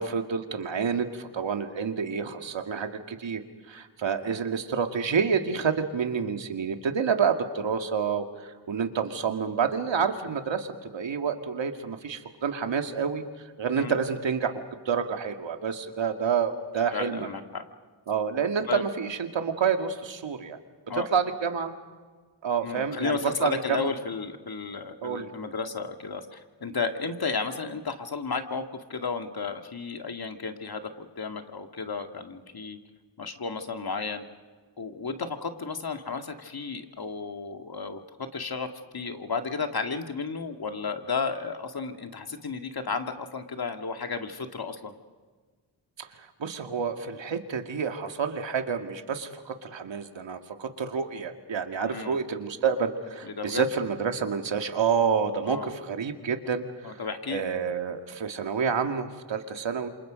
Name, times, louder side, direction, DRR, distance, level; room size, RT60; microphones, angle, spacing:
voice 1, 0.0-3.4 3.7-10.7 10.9-13.2 13.6-17.3 18.1-20.6 20.9-21.7 22.4-23.9 25.0-25.3 46.0-46.1 46.4-57.0 57.3-59.9, right 6 dB, 75° right, 5 dB, 2.3 m, -28 dB
voice 2, 16.9-17.7 18.7-18.8 20.9-21.1 22.6-32.8 33.2-34.2 34.8-38.0 38.3-38.7 38.9-44.9 51.8-52.2 53.2-53.6 55.5-55.7 56.8-57.4, left 4 dB, 55° left, 5 dB, 2.3 m, -33 dB
28.5 x 26.5 x 5.3 m, 1.4 s
cardioid pair, 60°, 46 cm